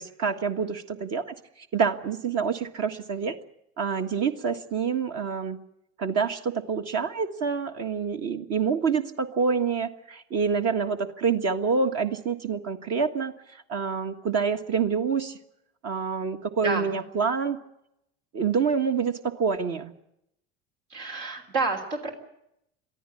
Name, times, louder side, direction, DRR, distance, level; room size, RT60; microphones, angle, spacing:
voice 1, 0.0-1.3 1.7-3.4 3.8-5.6 6.0-13.3 13.7-15.4 15.8-17.6 18.3-19.9, right 5 dB, 55° right, 5 dB, 1.6 m, -27 dB
voice 2, 16.6-17.0 20.9-22.1, right 3 dB, 75° right, 2 dB, 3.3 m, -29 dB
22.5 x 14.0 x 9.9 m, 0.80 s
hypercardioid pair, 85°, 31 cm